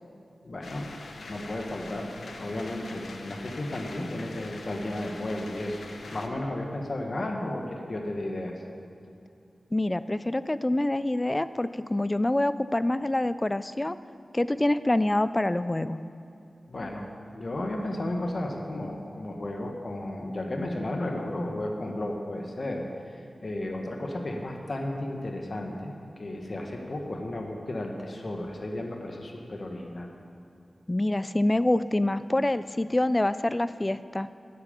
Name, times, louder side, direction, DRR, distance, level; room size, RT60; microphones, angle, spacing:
voice 1, 0.4-0.9 1.3-5.8 6.1-8.5 16.7-17.1 17.3-30.1, left 1 dB, 50° left, 2 dB, 1.4 m, -33 dB
sound 1, 0.6-6.3, left 3 dB, 90° left, 0.9 m, -43 dB
voice 2, 9.7-14.0 14.3-16.0 30.9-34.3, left 1 dB, 20° left, 14 dB, 0.3 m, -26 dB
10.5 x 8.9 x 6.9 m, 2.7 s
wide cardioid pair, 75°, 0 cm